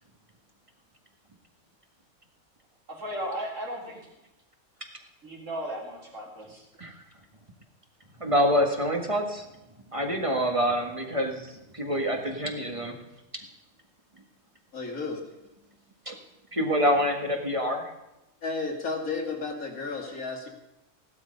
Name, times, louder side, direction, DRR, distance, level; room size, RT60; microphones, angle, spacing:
voice 1, 2.9-4.0 5.2-6.6, equal, 60° right, -2 dB, 3.9 m, -35 dB
voice 2, 8.2-9.4 9.9-12.9 16.0-16.1 16.5-17.8, equal, 25° right, 3 dB, 1.7 m, -26 dB
voice 3, 14.7-15.2 18.4-20.5, left 4 dB, 75° left, 1 dB, 2.7 m, -32 dB
15.5 x 12.0 x 5.3 m, 0.95 s
omnidirectional pair, 1.5 m